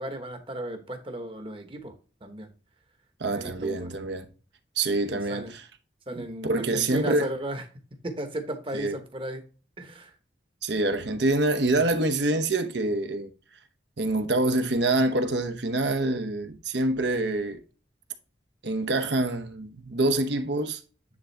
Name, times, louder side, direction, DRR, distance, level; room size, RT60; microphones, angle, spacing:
voice 1, 0.0-1.9 2.2-2.5 3.3-3.9 5.1-5.5 6.1-7.6 8.0-9.4 9.8-10.1, right 1 dB, 30° right, 1.1 m, -35 dB
voice 2, 3.2-4.3 4.8-5.7 6.1-7.3 8.7-8.9 10.6-13.3 14.0-17.6 18.6-20.8, right 2 dB, 65° right, 0.9 m, -26 dB
9.7 x 3.7 x 3.3 m
head